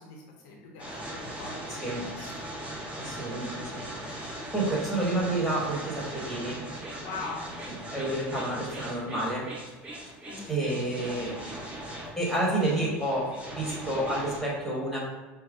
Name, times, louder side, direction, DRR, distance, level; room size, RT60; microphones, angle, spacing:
voice 1, 0.0-1.6 2.0-2.3 7.0-7.6 10.3-10.6 10.9-11.0, left 3 dB, 75° left, -1 dB, 0.8 m, -41 dB
sound 1, 0.8-14.4, right 1 dB, 20° right, 0.9 m, -39 dB
voice 2, 1.7-2.1 3.0-4.2 4.5-6.6 7.7-9.5 10.5-11.3 12.2-15.0, right 1 dB, ahead, -5 dB, 1.5 m, -30 dB
5.5 x 2.1 x 2.5 m, 1.2 s
supercardioid pair, 105°, 6 cm